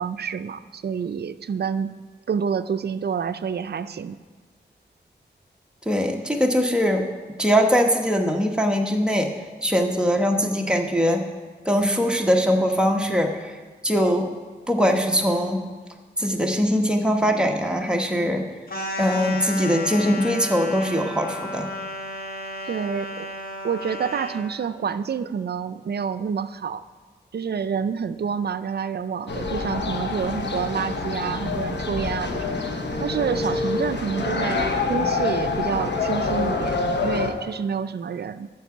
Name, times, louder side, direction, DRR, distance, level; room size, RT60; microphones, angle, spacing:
voice 1, 0.0-1.9 2.3-4.2 22.7-23.3 23.6-26.9 27.3-32.4 33.0-34.6 34.9-38.5, right 6 dB, 60° right, 12 dB, 0.4 m, -28 dB
voice 2, 5.8-7.0 7.4-9.3 9.6-11.2 11.6-14.3 14.7-15.6 16.2-18.4 19.0-21.7, equal, 5° right, 2 dB, 1.1 m, -21 dB
sound 1, 18.7-24.5, left 1 dB, 55° left, 1.6 m, -33 dB
sound 2, 29.3-37.3, left 3 dB, 75° left, 1.0 m, -26 dB
12.5 x 4.7 x 7.1 m, 1.4 s
wide cardioid pair, 95°, 18 cm